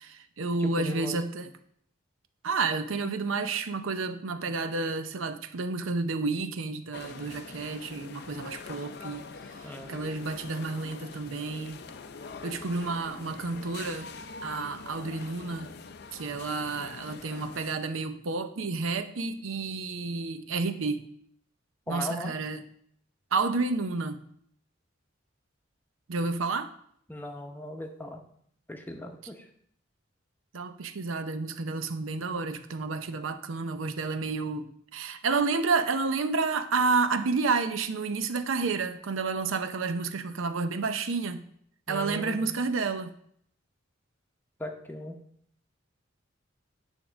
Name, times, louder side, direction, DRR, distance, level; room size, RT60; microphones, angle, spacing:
voice 1, 0.0-1.5 2.4-9.2 9.6-11.8 12.4-14.1 14.4-15.7 16.1-21.0 21.9-22.6 23.3-24.2 26.1-26.7 30.5-41.5 41.9-43.1, right 4 dB, 85° right, 9 dB, 0.6 m, -30 dB
voice 2, 0.6-1.2 9.6-10.0 21.9-22.3 27.1-28.2 28.7-29.5 41.9-42.5 44.6-45.2, left 1 dB, 10° left, 4 dB, 0.8 m, -38 dB
sound 1, 6.9-17.7, left 4 dB, 55° left, 0.5 m, -44 dB
9.1 x 3.6 x 6.2 m, 0.66 s
head